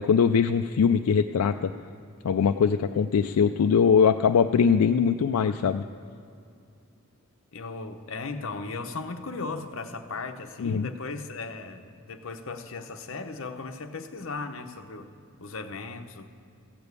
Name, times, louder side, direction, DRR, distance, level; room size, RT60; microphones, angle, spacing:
voice 1, 0.0-1.7 2.2-5.8 10.6-10.9, left 6 dB, 80° left, 7 dB, 0.4 m, -22 dB
voice 2, 7.5-15.1 15.4-16.3, left 3 dB, 60° left, 6 dB, 0.8 m, -37 dB
15.0 x 6.9 x 8.2 m, 2.5 s
head